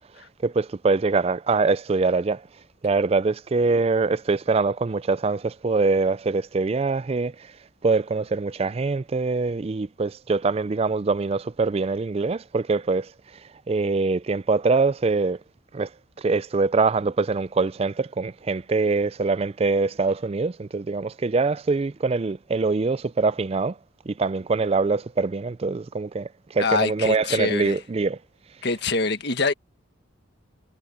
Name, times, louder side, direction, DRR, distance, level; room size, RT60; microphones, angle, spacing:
voice 1, 0.4-2.5 2.8-7.5 7.8-13.4 13.7-15.4 15.7-15.9 16.2-23.8 24.1-28.2, right 3 dB, 30° right, 0.3 m, -24 dB
voice 2, 26.6-27.8 28.6-29.5, left 3 dB, 55° left, 1.6 m, -24 dB
head